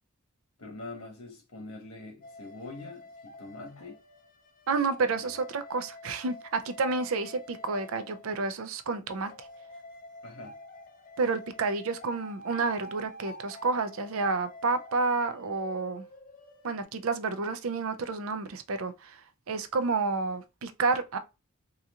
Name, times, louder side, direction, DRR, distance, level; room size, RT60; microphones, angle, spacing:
voice 1, 0.6-4.0 5.2-5.3 10.2-10.5, left 2 dB, 85° left, 1.2 m, -44 dB
sound 1, 2.2-8.5 9.1-16.8, left 1 dB, 40° left, 0.5 m, -48 dB
voice 2, 4.7-9.3 11.2-16.0 16.6-19.2 19.5-21.2, right 4 dB, 70° right, 0.5 m, -30 dB
3.8 x 2.9 x 2.4 m
head